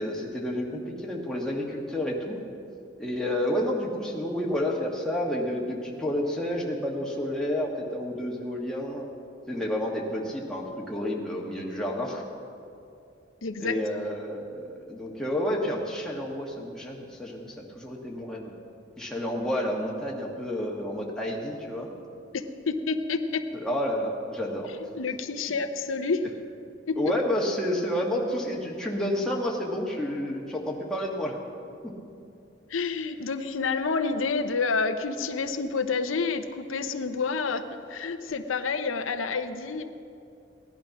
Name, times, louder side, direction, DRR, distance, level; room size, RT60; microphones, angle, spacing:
voice 1, 0.0-2.4 3.0-9.1 9.5-12.2 13.6-18.5 19.0-21.9 23.5-24.7 27.0-31.4 31.8-31.9, left 1 dB, 5° left, -3 dB, 1.5 m, -30 dB
voice 2, 13.4-14.1 22.3-23.4 24.9-26.3 26.9-27.0 32.7-39.8, left 4 dB, 85° left, 8 dB, 0.7 m, -29 dB
17.0 x 11.0 x 5.9 m, 2.6 s
head